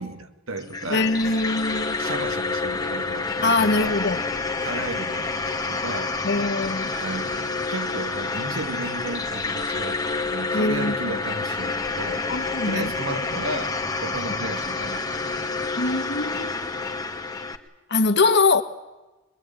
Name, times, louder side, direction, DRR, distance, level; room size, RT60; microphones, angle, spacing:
voice 1, 0.0-1.4 2.0-4.0 4.6-6.5 7.0-12.3 12.7-15.3, right 2 dB, 80° right, 2.3 m, -34 dB
sound 1, 0.6-17.6, left 3 dB, 20° left, 1.7 m, -28 dB
voice 2, 0.9-2.0 3.4-4.2 6.2-6.9 10.5-10.9 12.3-12.9 15.8-16.5 17.9-18.6, left 3 dB, 55° left, 1.7 m, -22 dB
23.5 x 22.5 x 9.2 m
head